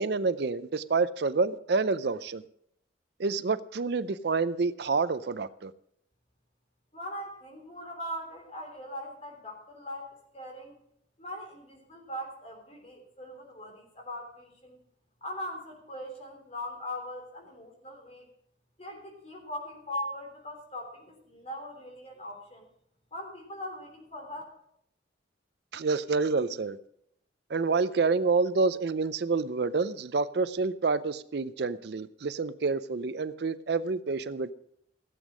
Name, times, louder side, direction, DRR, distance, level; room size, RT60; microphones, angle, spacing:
voice 1, 0.0-2.4 3.2-5.7 25.7-26.8 27.5-34.5, right 4 dB, 55° right, 14 dB, 0.5 m, -28 dB
voice 2, 6.9-10.8 11.2-14.8 15.2-18.3 18.8-22.7 23.1-24.4, left 1 dB, 35° left, 3 dB, 3.4 m, -40 dB
16.5 x 8.2 x 6.1 m, 0.72 s
head